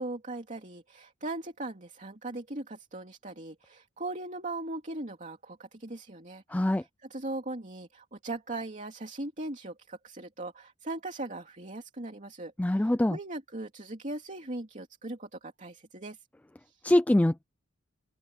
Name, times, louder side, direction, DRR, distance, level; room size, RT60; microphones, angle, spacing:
voice 1, 0.0-16.2 16.6-16.8, right 2 dB, 40° right, 2.8 m, -39 dB
voice 2, 6.5-6.8 12.6-13.2 16.8-17.4, left 1 dB, 10° left, 0.3 m, -24 dB
open air
head